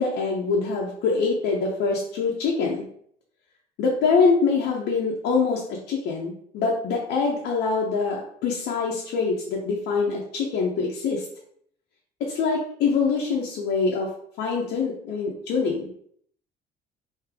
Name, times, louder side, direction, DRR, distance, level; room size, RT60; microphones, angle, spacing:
voice 1, 0.0-2.8 3.8-11.3 12.2-14.1 14.4-15.9, left 4 dB, 80° left, -2 dB, 0.7 m, -24 dB
3.3 x 2.8 x 3.4 m, 0.65 s
cardioid pair, 110°, 17 cm